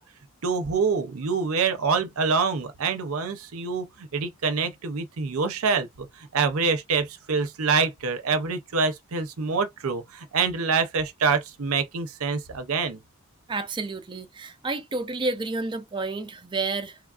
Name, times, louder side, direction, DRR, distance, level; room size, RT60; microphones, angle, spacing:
voice 1, 0.4-13.0, right 5 dB, 75° right, 0.6 m, -26 dB
voice 2, 13.5-17.0, right 3 dB, 20° right, 0.4 m, -30 dB
3.1 x 2.4 x 2.3 m
head